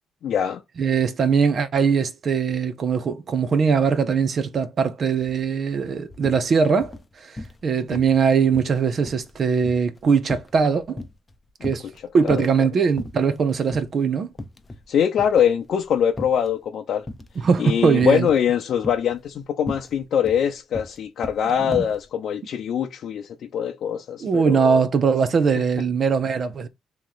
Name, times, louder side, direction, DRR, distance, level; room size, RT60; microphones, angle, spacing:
voice 1, 0.2-0.6 11.6-11.7 12.2-12.7 14.9-17.0 17.6-24.8, left 8 dB, 65° left, 0.6 m, -23 dB
voice 2, 0.8-11.0 11.6-14.3 17.4-18.3 21.4-21.9 24.2-26.7, right 6 dB, 50° right, 0.6 m, -21 dB
sound 1, 5.2-5.4 5.7-6.4 6.8-7.6 7.9-8.2 8.5-11.3 11.6-12.6 13.0-13.4 13.7-13.9 14.3-14.9 15.2-16.5 17.1-17.5 18.0-18.5 18.8-22.0, left 2 dB, 20° left, 0.6 m, -36 dB
3.1 x 2.9 x 3.9 m
cardioid pair, 95°, 0 cm